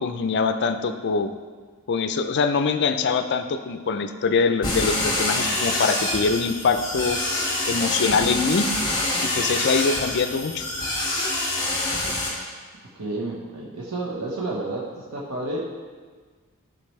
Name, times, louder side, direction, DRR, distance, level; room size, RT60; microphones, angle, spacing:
voice 1, 0.0-1.4 1.9-7.2 7.7-8.7 9.2-10.7, left 4 dB, 50° left, 9 dB, 0.4 m, -23 dB
sound 1, 4.6-12.3, left 2 dB, 20° left, 1.8 m, -26 dB
voice 2, 12.9-15.6, right 2 dB, 85° right, -4 dB, 1.1 m, -30 dB
12.0 x 5.8 x 3.2 m, 1.5 s
head